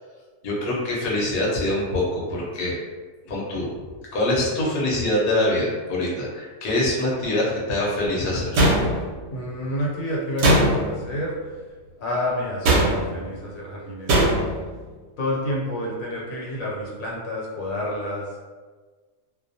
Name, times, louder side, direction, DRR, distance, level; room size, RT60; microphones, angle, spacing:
voice 1, 0.4-2.8 3.2-3.7 4.1-8.5, left 1 dB, 50° left, -5 dB, 0.7 m, -24 dB
sound 1, 8.5-9.3 10.4-11.1 12.6-13.2 14.1-14.6, right 1 dB, 65° right, 0.7 m, -19 dB
voice 2, 9.3-11.4 12.0-14.3 15.2-18.4, left 1 dB, 80° left, -4 dB, 1.0 m, -29 dB
2.2 x 2.1 x 2.6 m, 1.4 s
omnidirectional pair, 1.4 m